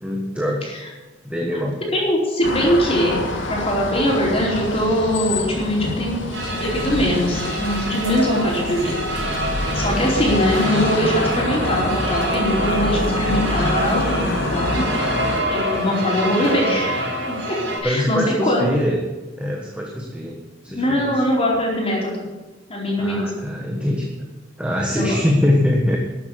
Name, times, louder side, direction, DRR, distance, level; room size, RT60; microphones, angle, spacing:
voice 1, 0.0-0.7 1.2-1.8 4.0-4.1 17.8-19.0 19.4-20.4 20.6-21.1 23.0-24.1 24.6-26.0, left 1 dB, 5° right, -1 dB, 1.5 m, -22 dB
voice 2, 1.9-8.9 9.7-14.8 15.4-17.6 17.8-18.7 20.7-22.2 22.7-23.3 24.9-25.2, equal, 30° left, -3 dB, 4.5 m, -22 dB
sound 1, 2.4-15.4, left 1 dB, 90° left, 2.3 m, -26 dB
sound 2, 6.3-17.8, right 1 dB, 85° right, 5.2 m, -26 dB
13.0 x 8.4 x 8.4 m, 1.2 s
head